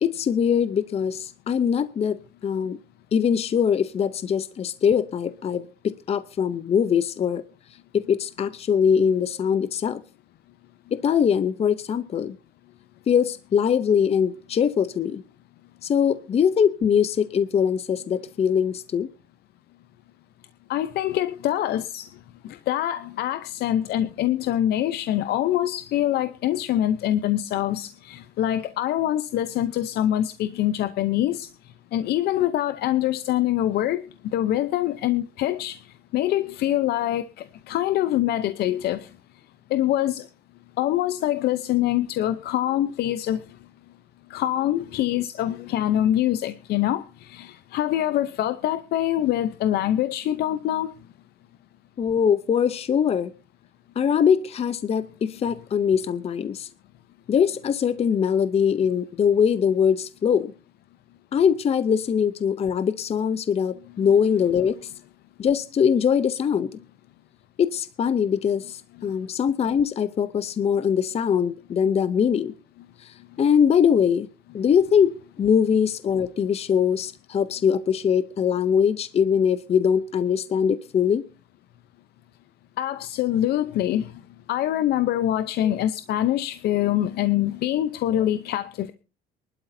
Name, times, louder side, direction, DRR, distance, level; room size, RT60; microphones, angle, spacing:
voice 1, 0.0-2.8 3.1-7.4 7.9-10.0 10.9-12.4 13.1-15.2 15.8-19.1 52.0-53.3 54.0-56.7 57.3-60.5 61.3-64.8 65.4-66.8 67.6-72.5 73.0-74.3 74.5-75.1 75.4-81.2 85.6-85.7 88.1-88.2, left 7 dB, 35° left, 14 dB, 0.6 m, -22 dB
voice 2, 20.7-22.1 22.5-31.5 31.9-34.1 34.3-35.8 36.1-37.2 37.7-39.1 39.7-40.3 40.8-43.4 44.3-50.9 82.8-84.1 84.5-88.9, left 12 dB, 70° left, 12 dB, 0.7 m, -24 dB
23.5 x 12.0 x 2.7 m, 0.31 s
cardioid pair, 110°, 17 cm